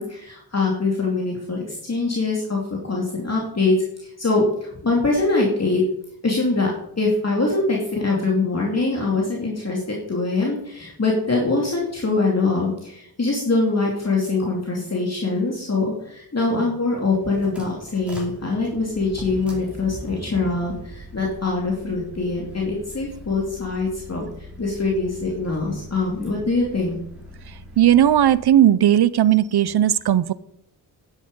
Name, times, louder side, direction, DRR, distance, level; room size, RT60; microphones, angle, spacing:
voice 1, 0.0-5.8 6.2-27.0, left 3 dB, 40° left, -2 dB, 2.7 m, -23 dB
sound 1, 17.0-28.5, equal, 5° right, 4.9 m, -41 dB
voice 2, 27.8-30.3, right 11 dB, 70° right, 19 dB, 0.7 m, -16 dB
11.0 x 10.0 x 5.5 m, 0.75 s
wide cardioid pair, 90°, 41 cm